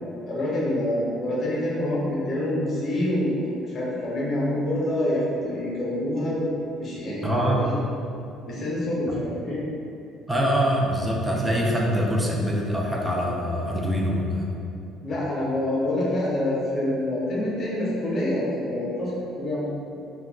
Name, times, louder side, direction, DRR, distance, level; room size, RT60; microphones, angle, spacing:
voice 1, 0.3-3.4 3.7-6.5 6.8-7.8 8.4-9.6 15.0-19.1 19.4-19.7, left 1 dB, 35° left, -6 dB, 0.8 m, -26 dB
voice 2, 7.2-7.7 9.1-9.2 10.3-14.5, equal, 5° right, -2 dB, 0.4 m, -24 dB
2.2 x 2.2 x 3.5 m, 2.6 s
cardioid pair, 145°, 0 cm